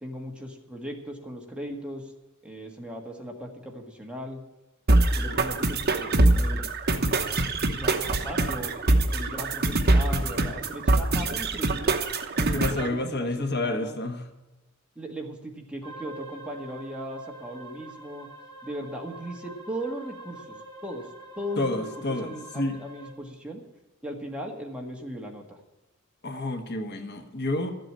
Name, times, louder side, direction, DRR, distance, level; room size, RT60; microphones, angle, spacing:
voice 1, 0.0-2.1 2.4-4.4 5.2-6.7 7.8-8.7 9.1-11.9 12.4-14.0 15.0-18.3 18.6-21.1 21.4-23.6 24.0-25.6, equal, 5° right, 0 dB, 1.6 m, -38 dB
sound 1, 4.9-12.9, right 2 dB, 50° right, 1.1 m, -23 dB
voice 2, 12.4-14.2 21.6-22.8 26.2-27.7, left 2 dB, 55° left, 5 dB, 1.3 m, -29 dB
sound 2, 15.8-23.1, right 2 dB, 20° left, 2.5 m, -45 dB
13.0 x 7.9 x 8.6 m, 1.1 s
head